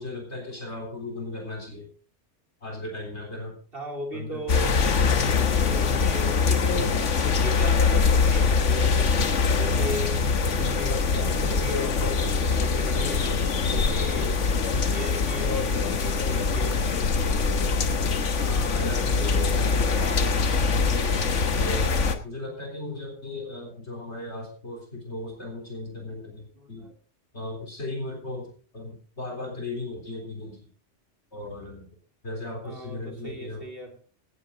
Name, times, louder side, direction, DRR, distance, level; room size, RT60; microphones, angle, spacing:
voice 1, 0.0-1.9 2.6-3.6 4.1-4.5 13.9-14.4 18.3-21.1 21.5-26.9 27.3-30.6 31.3-31.9 32.2-33.6, left 2 dB, 65° left, 1 dB, 4.0 m, -36 dB
voice 2, 3.7-13.3 13.7-14.4 14.8-17.3 26.5-26.9 32.6-34.0, equal, 50° right, 3 dB, 3.4 m, -37 dB
sound 1, 4.5-22.2, left 4 dB, 85° left, 1.6 m, -23 dB
17.0 x 11.5 x 3.8 m, 0.39 s
omnidirectional pair, 1.2 m